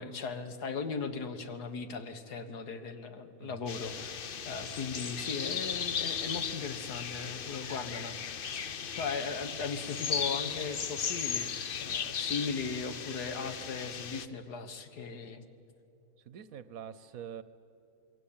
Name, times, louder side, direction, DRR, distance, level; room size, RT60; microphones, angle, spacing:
voice 1, 0.0-4.1 4.5-8.6 9.0-11.5 11.8-15.4, left 5 dB, 75° left, 9 dB, 1.9 m, -38 dB
sound 1, 3.7-14.3, left 7 dB, 50° left, 0.7 m, -36 dB
voice 2, 16.2-17.4, right 9 dB, 65° right, 15 dB, 1.1 m, -45 dB
27.0 x 21.5 x 8.8 m, 2.7 s
omnidirectional pair, 1.7 m